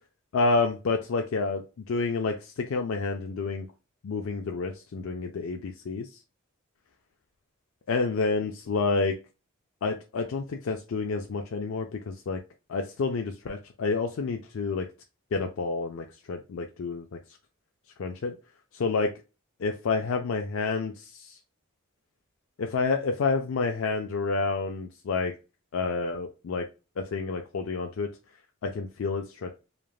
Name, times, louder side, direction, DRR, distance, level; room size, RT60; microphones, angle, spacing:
voice 1, 0.3-3.7 4.0-6.1 7.9-9.2 9.8-12.4 12.7-14.9 15.3-17.2 18.0-18.4 18.7-19.1 19.6-21.4 22.6-25.3 25.7-26.7 27.0-28.1 28.6-29.6, left 4 dB, 65° left, 4 dB, 0.4 m, -29 dB
3.2 x 2.4 x 2.3 m, 0.29 s
head